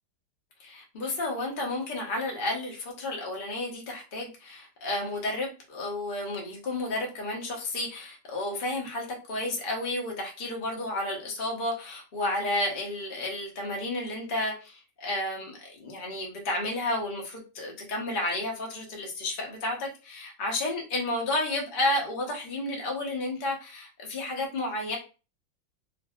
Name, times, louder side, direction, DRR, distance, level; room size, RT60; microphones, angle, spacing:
voice 1, 0.6-25.0, left 1 dB, 55° left, -1 dB, 0.5 m, -31 dB
2.6 x 2.6 x 2.3 m, 0.33 s
omnidirectional pair, 1.9 m